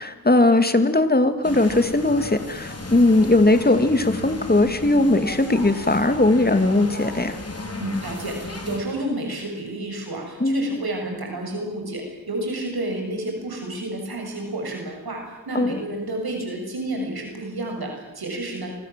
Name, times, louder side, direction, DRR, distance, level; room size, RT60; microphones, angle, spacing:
voice 1, 0.0-7.4 10.4-10.8 15.5-15.8, left 2 dB, 25° left, 9 dB, 2.5 m, -19 dB
sound 1, 1.4-8.8, left 2 dB, 40° left, 5.2 m, -34 dB
voice 2, 7.8-18.7, right 1 dB, 80° right, 2 dB, 7.4 m, -30 dB
27.5 x 23.5 x 7.7 m, 1.0 s
wide cardioid pair, 80°, 36 cm